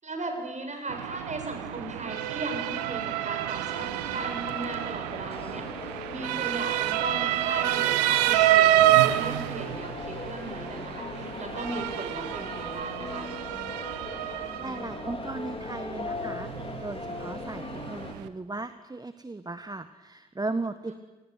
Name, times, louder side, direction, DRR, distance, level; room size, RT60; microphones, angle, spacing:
voice 1, 0.0-13.3 20.9-21.0, right 2 dB, 35° right, 5 dB, 7.6 m, -37 dB
Motor vehicle (road) / Siren, 0.9-18.3, right 14 dB, 80° right, 1.2 m, -28 dB
sound 1, 3.6-18.1, left 3 dB, 25° left, 4.2 m, -40 dB
voice 2, 14.6-20.9, right 3 dB, 20° right, 12 dB, 1.4 m, -36 dB
29.0 x 20.0 x 9.4 m, 1.1 s
hypercardioid pair, 45°, 21 cm